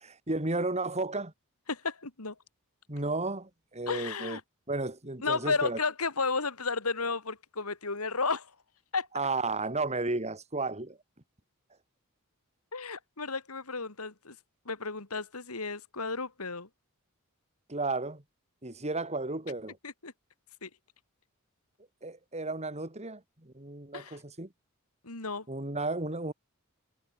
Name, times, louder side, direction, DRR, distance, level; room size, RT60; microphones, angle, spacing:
voice 1, 0.0-1.3 2.9-4.4 4.7-5.8 9.1-11.0 17.7-18.2 18.6-19.8 22.0-24.5 25.5-26.3, right 3 dB, 30° right, 3.2 m, -33 dB
voice 2, 1.7-2.3 3.9-4.4 5.2-8.5 8.9-9.1 12.7-14.4 14.6-16.7 19.8-20.1 20.6-20.7 23.9-24.2 25.0-25.4, left 4 dB, 90° left, 3.0 m, -33 dB
head